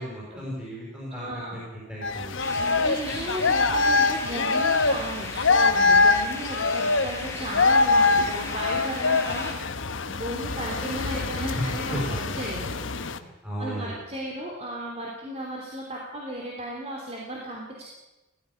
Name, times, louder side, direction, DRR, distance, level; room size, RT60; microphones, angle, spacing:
voice 1, 0.0-2.5 11.6-11.7 11.9-12.2 13.1-14.0, equal, 5° right, -5 dB, 5.8 m, -34 dB
voice 2, 1.1-1.6 2.7-9.6 10.2-12.7 13.6-17.9, right 1 dB, 30° right, -2 dB, 3.4 m, -35 dB
sound 1, 2.0-13.2, left 3 dB, 65° left, 1.1 m, -24 dB
sound 2, 2.4-9.5, left 3 dB, 15° left, 3.1 m, -38 dB
17.5 x 16.0 x 9.7 m, 1.0 s
head